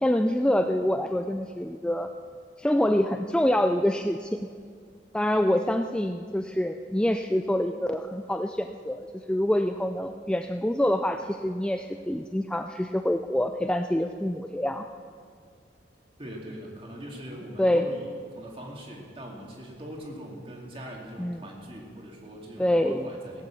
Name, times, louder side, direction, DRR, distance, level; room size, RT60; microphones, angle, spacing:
voice 1, 0.0-2.1 2.6-4.5 5.1-14.9 17.6-17.9 21.2-21.4 22.6-23.1, left 1 dB, 5° left, 6 dB, 0.3 m, -26 dB
voice 2, 16.2-23.4, equal, 30° right, -1 dB, 2.4 m, -41 dB
17.5 x 8.6 x 7.1 m, 2.1 s
head